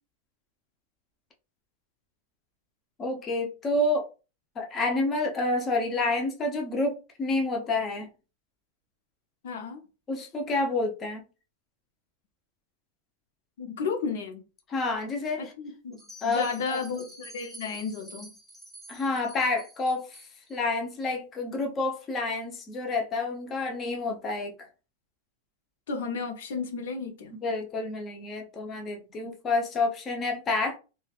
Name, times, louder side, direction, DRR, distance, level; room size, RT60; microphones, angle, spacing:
voice 1, 3.0-4.1 4.6-8.1 10.1-11.2 14.7-15.4 16.2-16.5 18.9-20.2 20.5-24.5 27.3-30.8, left 2 dB, 25° left, 0.6 m, -29 dB
voice 2, 9.4-9.8 13.6-14.4 15.4-18.3 25.9-27.4 29.2-29.3, left 5 dB, 75° left, 0.6 m, -33 dB
Bell, 15.9-20.6, right 1 dB, ahead, 1.3 m, -49 dB
3.1 x 2.2 x 2.4 m
supercardioid pair, 140°, 0 cm